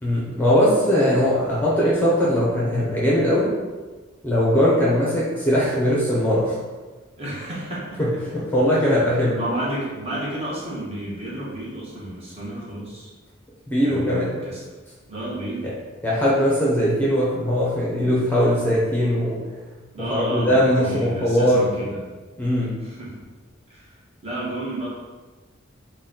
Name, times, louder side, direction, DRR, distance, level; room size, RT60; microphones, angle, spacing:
voice 1, 0.0-3.5 4.2-6.6 8.0-8.1 8.5-9.4 13.7-14.2 15.6-15.7 16.0-19.4 20.1-21.7 22.4-22.7, equal, 10° left, -6 dB, 0.6 m, -20 dB
voice 2, 7.2-8.2 8.8-9.0 9.4-13.1 13.8-14.6 15.1-15.7 19.9-22.0 22.8-23.2 23.7-24.9, right 1 dB, 30° right, -7 dB, 1.1 m, -32 dB
4.0 x 2.2 x 3.8 m, 1.3 s
head